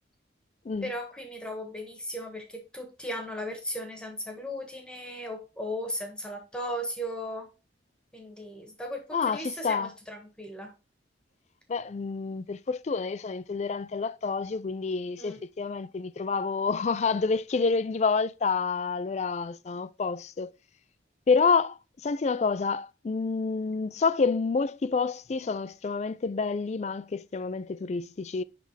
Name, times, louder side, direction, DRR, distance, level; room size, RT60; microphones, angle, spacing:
voice 1, 0.8-7.5 8.1-10.7 15.2-15.4, equal, 5° left, 1.4 m, -36 dB
voice 2, 9.1-9.9 11.7-20.5 21.3-28.4, left 4 dB, 35° left, 0.3 m, -28 dB
10.0 x 3.4 x 3.2 m
head